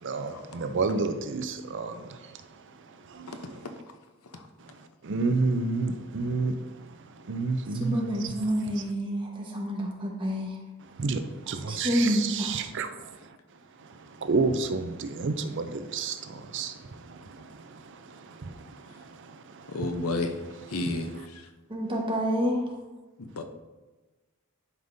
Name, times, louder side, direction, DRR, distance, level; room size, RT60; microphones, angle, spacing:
voice 1, 0.0-2.2 3.1-3.7 5.0-6.6 7.3-8.3 11.0-13.2 14.0-19.8, right 3 dB, 60° right, 0.5 m, -31 dB
voice 2, 7.8-10.6 11.7-12.6 21.7-22.6, equal, 25° right, 1.2 m, -28 dB
voice 3, 19.7-20.3 20.7-21.4 23.2-23.4, left 2 dB, 85° left, 0.8 m, -32 dB
11.0 x 5.2 x 2.7 m
head